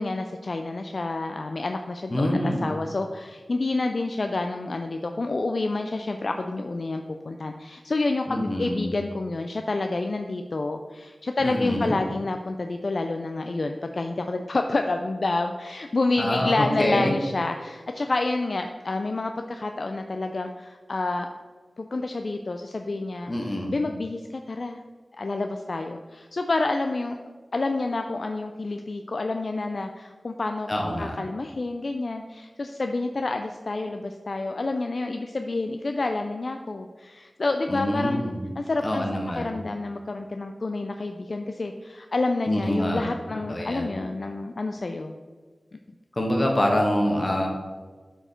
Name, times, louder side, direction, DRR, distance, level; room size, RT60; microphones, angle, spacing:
voice 1, 0.0-21.3 21.8-23.3 23.7-24.8 25.2-27.2 27.5-30.7 31.0-38.2 38.6-39.0 39.4-45.2, left 2 dB, 65° left, 5 dB, 0.3 m, -28 dB
voice 2, 2.1-2.7 8.3-8.9 11.4-12.0 16.2-17.2 23.3-23.7 30.7-31.2 37.7-38.5 38.8-39.6 42.5-43.1 43.5-43.9 46.1-47.5, left 1 dB, 35° left, 1 dB, 1.5 m, -25 dB
6.7 x 4.6 x 4.4 m, 1.4 s
wide cardioid pair, 50°, 0 cm